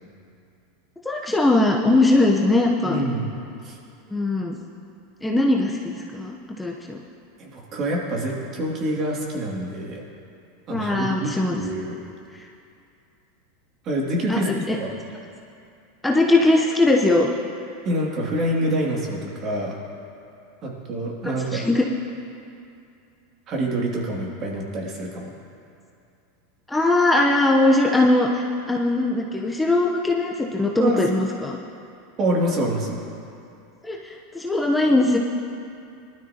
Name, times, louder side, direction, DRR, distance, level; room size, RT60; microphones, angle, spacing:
voice 1, 1.0-3.0 4.1-4.6 5.2-7.0 10.7-11.6 14.3-14.8 16.0-17.3 21.2-21.8 26.7-31.6 33.8-35.2, left 2 dB, 5° left, -1 dB, 0.9 m, -20 dB
voice 2, 2.8-3.3 3.6-3.8 7.4-10.0 10.7-12.0 13.8-14.5 14.8-14.9 17.8-19.8 20.6-21.6 23.5-25.3 30.8-31.0 32.2-33.0, right 1 dB, 40° right, -2 dB, 2.6 m, -26 dB
19.0 x 12.5 x 3.0 m, 2.6 s
hypercardioid pair, 110°, 0 cm